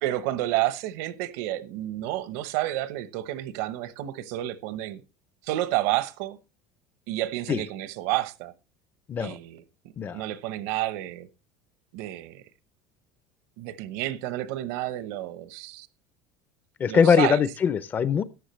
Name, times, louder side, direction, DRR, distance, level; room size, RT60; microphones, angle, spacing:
voice 1, 0.0-5.0 5.4-6.4 7.1-8.5 9.2-9.6 10.1-11.3 11.9-12.4 13.6-15.9 16.9-17.4, right 15 dB, 70° right, 0.9 m, -30 dB
voice 2, 16.8-18.2, left 7 dB, 20° left, 0.4 m, -22 dB
13.5 x 9.8 x 3.1 m
cardioid pair, 175°, 9 cm